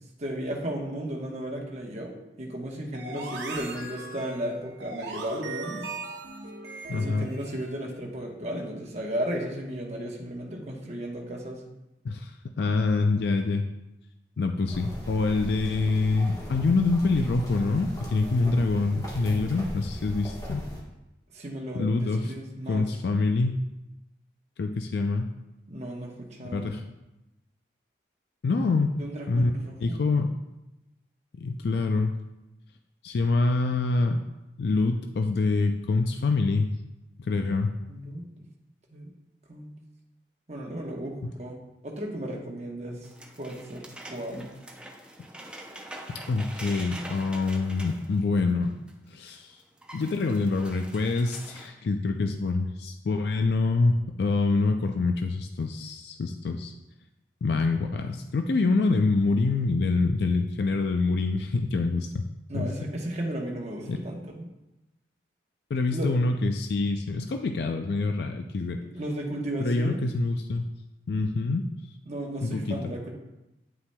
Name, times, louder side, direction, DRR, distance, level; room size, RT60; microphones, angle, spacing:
voice 1, 0.2-5.9 6.9-11.6 21.3-22.9 25.7-26.8 29.0-30.1 37.9-38.5 38.9-39.1 39.5-39.8 40.5-41.6 41.8-43.1 43.4-44.5 62.5-64.5 65.9-66.1 68.9-70.0 72.1-73.1, right 1 dB, 40° right, -1 dB, 1.0 m, -35 dB
sound 1, 2.9-7.8, right 3 dB, 85° right, 0.8 m, -38 dB
voice 2, 6.9-7.3 12.0-13.6 14.4-20.6 21.7-22.3 22.7-23.6 24.6-25.3 26.5-26.8 28.4-28.9 29.3-29.5 29.8-30.3 31.4-32.2 33.0-34.2 34.6-36.7 37.2-37.7 41.2-41.3 46.1-48.7 49.1-49.6 49.9-56.7 57.4-62.2 62.5-62.7 63.9-64.0 65.7-68.8 69.6-70.7 71.1-71.7 72.4-72.9, left 3 dB, 65° left, 5 dB, 0.4 m, -26 dB
sound 2, 14.7-20.8, equal, 20° left, 1.2 m, -38 dB
sound 3, 43.0-48.9 49.3-49.4 49.6-51.7, right 1 dB, 5° right, 0.5 m, -44 dB
9.4 x 5.8 x 2.2 m, 0.96 s
head